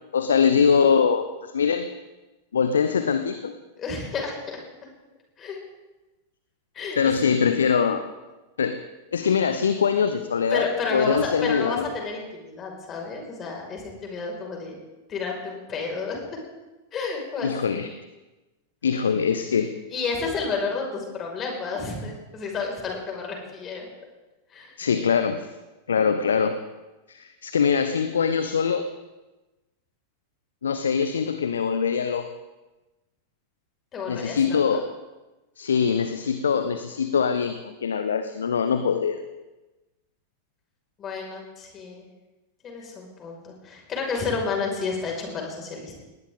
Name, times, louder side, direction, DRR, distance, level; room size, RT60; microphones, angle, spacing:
voice 1, 0.1-1.9 2.5-3.5 7.0-8.1 8.6-8.8 9.1-11.9 17.4-17.9 18.8-19.7 24.8-25.5 25.9-26.6 27.1-28.9 30.6-32.3 34.1-34.9 35.6-39.2, left 6 dB, 70° left, 10 dB, 0.9 m, -23 dB
voice 2, 3.8-4.9 5.4-5.6 6.7-7.1 10.5-14.8 15.1-16.2 16.9-17.9 19.9-23.9 24.5-24.7 33.9-34.8 41.0-42.1 42.6-45.9, left 4 dB, 25° left, 1 dB, 5.5 m, -31 dB
20.0 x 19.0 x 3.8 m, 1.1 s
figure-of-eight pair, 90°, 0 cm